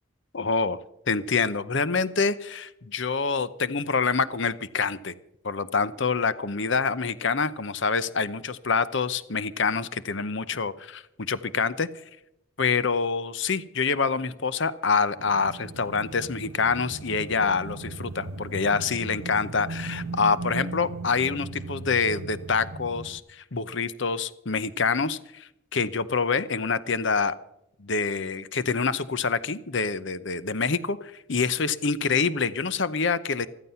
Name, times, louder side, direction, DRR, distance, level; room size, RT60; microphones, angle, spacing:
voice 1, 0.3-0.8 1.1-5.1 5.4-11.9 12.6-27.4 27.8-33.5, left 5 dB, 60° left, 15 dB, 0.8 m, -26 dB
sound 1, 15.2-23.2, right 2 dB, 80° right, 0.9 m, -37 dB
15.0 x 14.0 x 5.6 m, 0.79 s
head